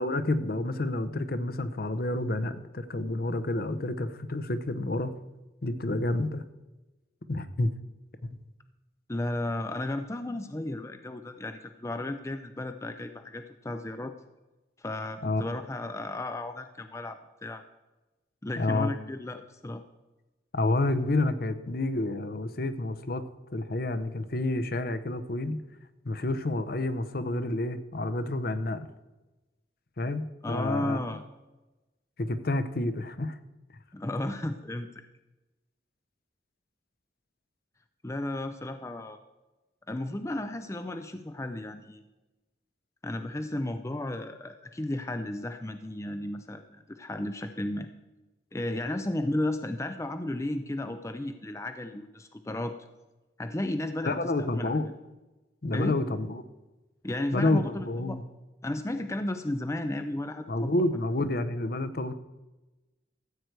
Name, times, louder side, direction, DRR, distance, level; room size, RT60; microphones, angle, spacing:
voice 1, 0.0-5.1 5.6-6.4 7.3-7.7 8.2-8.4 15.2-15.4 18.6-18.9 20.5-23.2 23.5-25.6 26.0-28.9 30.0-31.0 32.2-33.4 54.0-54.9 55.6-56.4 57.3-58.2 60.5-62.1, left 2 dB, 50° left, 12 dB, 0.7 m, -29 dB
voice 2, 9.1-14.1 14.8-17.6 18.4-19.8 30.4-31.2 33.9-35.0 38.0-39.2 39.9-42.0 43.0-47.9 48.5-52.7 53.4-54.8 55.7-55.9 57.0-58.2 58.6-60.7, left 1 dB, 15° left, 8 dB, 0.4 m, -34 dB
14.0 x 8.0 x 4.6 m, 1.1 s
head